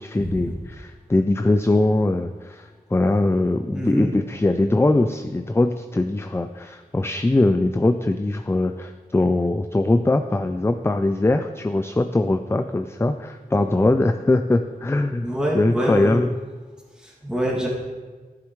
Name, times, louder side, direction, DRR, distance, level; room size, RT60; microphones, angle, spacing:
voice 1, 0.0-15.3 15.5-16.4, left 2 dB, 15° left, 8 dB, 0.4 m, -21 dB
voice 2, 3.7-4.2 15.2-16.2 17.0-17.7, equal, 5° right, -3 dB, 2.3 m, -25 dB
11.0 x 7.3 x 3.1 m, 1.4 s
wide cardioid pair, 55°, 16 cm